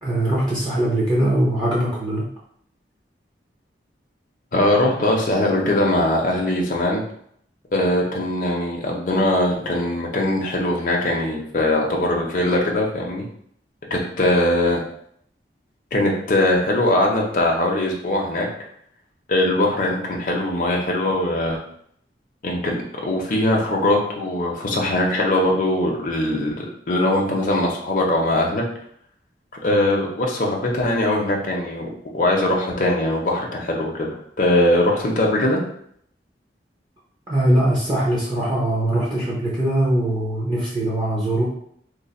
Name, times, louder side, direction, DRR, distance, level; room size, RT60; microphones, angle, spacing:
voice 1, 0.0-2.2 37.3-41.5, right 1 dB, 25° right, -7 dB, 0.7 m, -21 dB
voice 2, 4.5-7.0 7.7-13.2 13.9-14.8 15.9-18.5 19.3-21.6 22.4-22.8 23.0-28.6 29.6-35.6, left 1 dB, 50° left, -1 dB, 0.6 m, -21 dB
3.2 x 2.1 x 4.1 m, 0.67 s
head